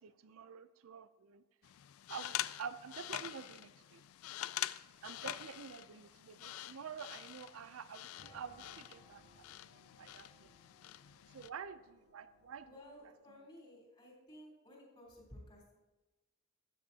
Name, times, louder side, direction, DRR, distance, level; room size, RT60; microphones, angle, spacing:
voice 1, 0.0-1.4 2.1-4.0 5.0-9.5 10.0-10.3 11.3-12.7, right 6 dB, 80° right, 13 dB, 0.5 m, -48 dB
sound 1, 1.6-11.5, left 13 dB, 85° left, 0.3 m, -45 dB
sound 2, 8.1-13.3, left 2 dB, 50° left, 2.0 m, -65 dB
voice 2, 12.6-15.8, left 1 dB, 25° left, -3 dB, 3.6 m, -56 dB
13.0 x 10.0 x 2.8 m, 1.1 s
head